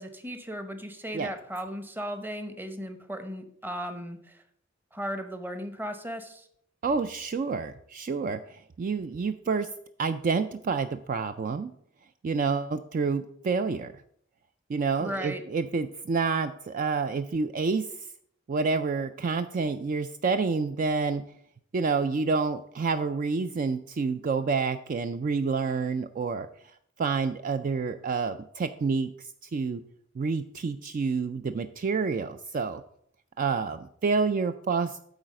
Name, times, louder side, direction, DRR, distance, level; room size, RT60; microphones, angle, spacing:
voice 1, 0.0-4.4 4.9-6.5 15.0-15.4, equal, 10° right, 8 dB, 0.8 m, -36 dB
voice 2, 6.8-9.7 10.0-11.7 12.2-13.9 14.7-17.9 18.5-21.2 21.7-26.5 27.0-29.8 30.2-32.8 33.4-35.1, right 4 dB, 45° right, 10 dB, 0.3 m, -28 dB
8.8 x 4.1 x 6.4 m, 0.67 s
head